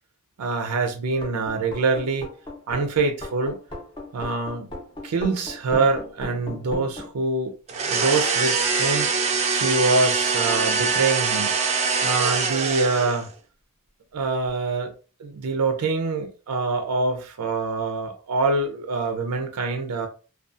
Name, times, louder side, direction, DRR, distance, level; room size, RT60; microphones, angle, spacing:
voice 1, 0.4-2.3 2.7-3.6 4.1-4.7 5.0-7.5 7.9-9.1 9.5-11.5 12.0-13.3 14.1-14.9 15.2-20.1, right 3 dB, 90° right, 0.4 m, -25 dB
sound 1, 1.1-7.1, left 2 dB, 20° left, 0.6 m, -36 dB
sound 2, 7.7-13.3, right 5 dB, 30° right, 0.4 m, -23 dB
2.6 x 2.3 x 2.4 m
head